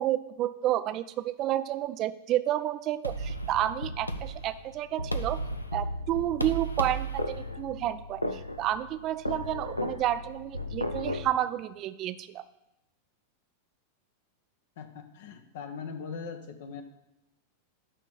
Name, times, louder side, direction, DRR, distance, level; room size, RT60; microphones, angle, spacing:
voice 1, 0.0-5.4 5.7-12.4, right 13 dB, 35° right, 13 dB, 0.5 m, -30 dB
sound 1, 3.0-11.3, equal, 85° left, 0.6 m, -34 dB
voice 2, 14.8-16.8, left 5 dB, 55° left, 7 dB, 1.1 m, -40 dB
12.0 x 4.1 x 8.2 m, 0.89 s
figure-of-eight pair, 90°, 0 cm